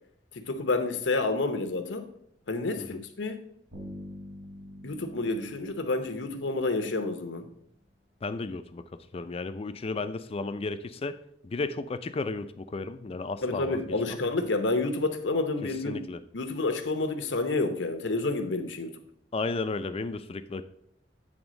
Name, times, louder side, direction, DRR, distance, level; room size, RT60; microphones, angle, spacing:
voice 1, 0.3-2.0 2.5-3.4 4.8-7.5 13.4-16.0 16.3-18.9, left 3 dB, 85° left, 7 dB, 0.9 m, -29 dB
Bass guitar, 3.7-7.5, equal, 75° right, 2.8 m, -46 dB
voice 2, 8.2-8.8 9.1-11.2 11.4-14.2 15.6-16.2 19.3-20.7, left 3 dB, 35° left, 11 dB, 0.4 m, -34 dB
8.9 x 3.5 x 5.1 m, 0.70 s
head